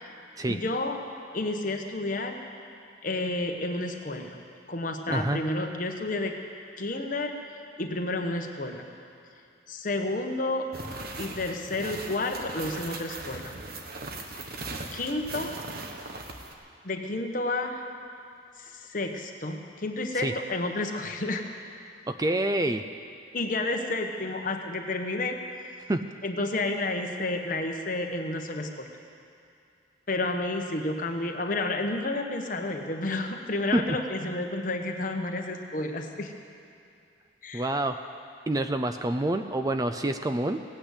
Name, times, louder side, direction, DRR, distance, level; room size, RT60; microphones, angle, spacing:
voice 1, 0.5-1.0 1.3-2.4 3.0-4.4 4.7-6.3 6.8-7.4 7.8-8.9 9.7-10.7 11.2-13.6 14.9-15.6 16.8-17.8 18.6-21.4 23.3-25.3 26.2-28.9 30.1-36.3 37.4-37.7, left 2 dB, 45° left, 4 dB, 1.2 m, -30 dB
voice 2, 5.1-5.4 20.2-20.3 22.1-22.8 25.9-26.1 33.7-33.9 37.5-38.0 38.5-40.6, right 1 dB, 20° right, 8 dB, 0.4 m, -27 dB
sound 1, 10.7-16.5, right 2 dB, 55° right, 1.2 m, -39 dB
17.5 x 8.8 x 8.3 m, 2.5 s
head